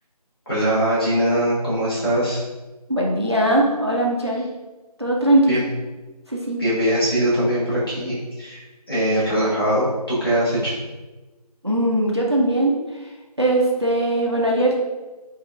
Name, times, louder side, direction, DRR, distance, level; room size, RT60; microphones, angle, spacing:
voice 1, 0.5-2.4 5.5-5.6 6.6-10.8, right 1 dB, 35° left, -10 dB, 1.4 m, -21 dB
voice 2, 2.9-4.5 5.0-5.5 6.3-6.6 9.7-9.8 11.6-12.8 13.4-14.7, right 1 dB, 45° right, -2 dB, 0.4 m, -20 dB
3.8 x 2.3 x 2.3 m, 1.2 s
figure-of-eight pair, 175°, 20 cm